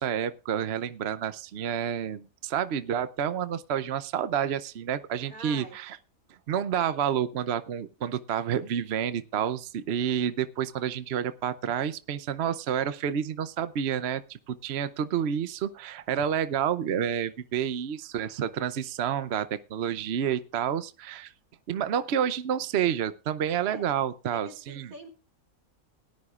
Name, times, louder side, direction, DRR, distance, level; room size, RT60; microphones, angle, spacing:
voice 1, 0.0-6.0 6.5-21.3 21.7-24.9, right 9 dB, 55° right, 12 dB, 0.9 m, -29 dB
voice 2, 5.3-5.8 23.6-23.9 24.3-25.1, right 2 dB, 85° right, 5 dB, 3.3 m, -45 dB
18.5 x 12.5 x 2.4 m, 0.34 s
omnidirectional pair, 1.5 m